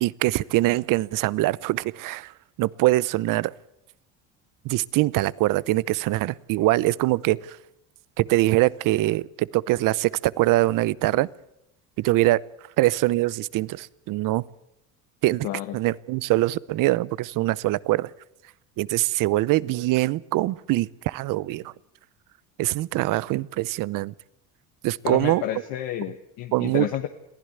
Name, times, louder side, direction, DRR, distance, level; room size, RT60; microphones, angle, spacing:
voice 1, 0.0-2.3 2.6-3.5 4.6-7.6 8.2-11.3 12.0-12.4 12.8-14.4 15.2-15.5 15.7-18.1 18.8-21.7 22.6-24.1 24.8-25.4 26.5-26.9, right 18 dB, 60° right, 22 dB, 0.8 m, -23 dB
voice 2, 15.4-15.8 25.0-27.1, left 13 dB, 70° left, 6 dB, 1.5 m, -30 dB
22.5 x 15.5 x 8.1 m, 0.82 s
supercardioid pair, 105°, 37 cm